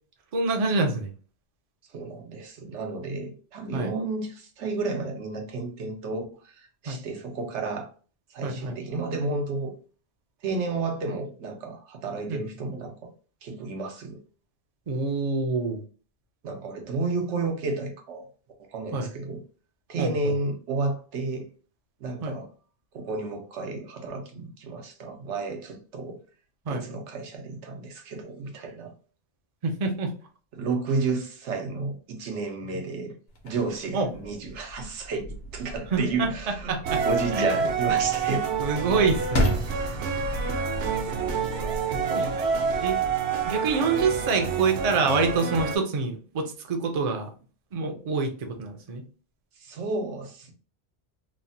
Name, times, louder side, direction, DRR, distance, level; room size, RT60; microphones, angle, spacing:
voice 1, 0.3-1.1 3.7-3.9 6.9-7.0 8.4-8.8 12.3-12.4 14.9-15.8 18.9-19.1 20.0-20.3 22.2-22.4 26.7-26.8 29.6-30.1 33.9-34.1 35.9-37.0 37.3-37.6 38.6-39.6 41.9-42.3 42.7-43.0 43.4-47.3 47.7-49.0, right 4 dB, 45° right, 0.5 m, -26 dB
voice 2, 1.9-7.9 8.3-9.7 10.4-13.1 13.4-14.2 16.4-18.2 18.7-19.4 19.9-21.5 22.0-22.5 22.9-26.2 26.7-28.9 30.5-33.1 33.4-36.8 37.0-38.6 49.6-50.5, right 3 dB, 90° right, 1.0 m, -32 dB
sound 1, 33.3-44.3, equal, 60° left, 1.0 m, -35 dB
sound 2, 36.8-45.8, right 5 dB, 70° right, 0.8 m, -28 dB
3.1 x 2.1 x 2.6 m
omnidirectional pair, 1.2 m